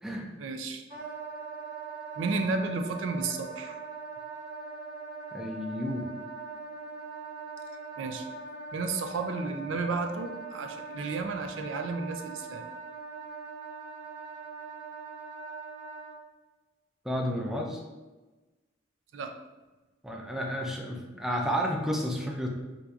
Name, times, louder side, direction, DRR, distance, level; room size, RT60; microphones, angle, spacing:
voice 1, 0.4-0.8 2.2-3.8 8.0-8.2 8.7-12.6 19.1-19.3, right 3 dB, 85° right, 6 dB, 0.4 m, -32 dB
Wind instrument woodwind instrument, 0.9-16.2, right 4 dB, 55° right, 1.1 m, -41 dB
voice 2, 5.3-6.1 17.0-17.8 20.0-22.5, equal, ahead, 0 dB, 0.4 m, -31 dB
4.5 x 2.6 x 2.3 m, 1.2 s
head